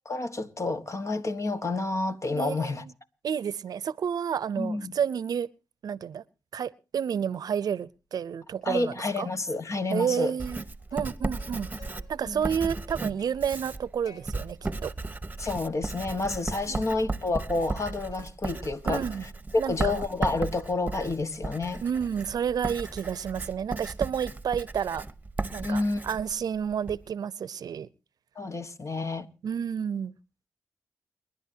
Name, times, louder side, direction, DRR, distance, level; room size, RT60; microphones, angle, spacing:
voice 1, 0.0-2.8 4.6-4.9 8.6-10.3 12.3-12.4 15.4-19.0 19.5-21.8 25.6-26.0 28.3-29.3, left 3 dB, 50° left, 1.5 m, -29 dB
voice 2, 2.3-2.9 3.2-5.5 5.8-6.2 6.5-9.3 9.9-10.6 10.9-11.7 12.1-14.9 16.7-16.9 18.8-19.2 19.6-20.0 21.8-25.0 25.5-27.9 29.4-30.1, right 8 dB, 75° right, 0.6 m, -30 dB
Plucked string instrument, 8.6-9.2 9.5-9.7 10.1-12.1 12.4-14.2 14.6-15.1 15.4-16.4 16.8-18.3 18.5-19.0 19.4-23.7, left 3 dB, 85° left, 6.9 m, -56 dB
Writing, 10.4-27.0, right 3 dB, 25° right, 1.0 m, -35 dB
29.0 x 11.0 x 2.8 m
supercardioid pair, 45°, 7 cm